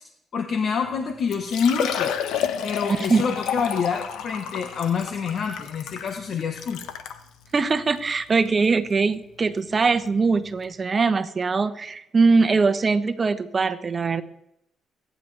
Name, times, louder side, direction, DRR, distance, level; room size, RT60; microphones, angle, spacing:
voice 1, 0.3-2.1 2.6-6.8, left 6 dB, 60° left, 5 dB, 1.2 m, -26 dB
Liquid, 0.9-1.0 1.3-7.2 7.9-8.0 8.5-8.6 10.2-10.3 10.5-10.6, left 8 dB, 90° left, 1.1 m, -30 dB
voice 2, 2.9-3.2 7.5-14.2, right 4 dB, 35° right, 11 dB, 1.0 m, -22 dB
25.0 x 10.0 x 3.4 m, 0.80 s
cardioid pair, 90°, 0 cm